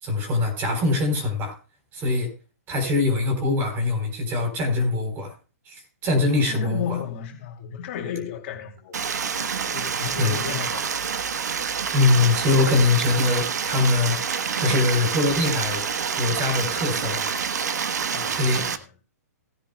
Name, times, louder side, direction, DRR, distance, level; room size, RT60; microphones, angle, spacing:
voice 1, 0.0-1.5 1.9-2.3 2.7-5.3 5.7-7.0 10.2-10.3 11.9-14.2 14.6-15.9 16.2-17.3 18.3-18.7, left 3 dB, 25° right, 3.9 m, -23 dB
voice 2, 6.3-9.0 9.6-11.0 18.1-18.8, left 8 dB, 45° left, 2.6 m, -33 dB
Stream, 8.9-18.8, right 6 dB, 80° right, 1.1 m, -27 dB
17.5 x 10.0 x 2.2 m
hypercardioid pair, 145°, 9 cm